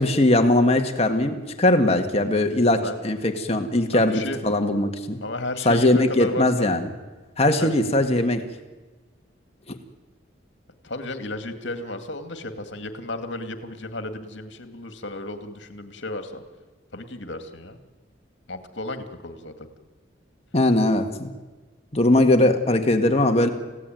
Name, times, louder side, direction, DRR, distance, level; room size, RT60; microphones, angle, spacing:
voice 1, 0.0-5.2 5.7-6.9 7.4-8.4 9.7-9.8 20.5-21.3 21.9-23.5, left 1 dB, 30° left, 5 dB, 1.9 m, -20 dB
voice 2, 3.9-4.4 5.2-6.7 7.6-7.7 10.8-16.4 16.9-17.8 18.5-19.7, left 2 dB, 70° left, 7 dB, 2.3 m, -33 dB
29.5 x 16.5 x 9.2 m, 1.2 s
head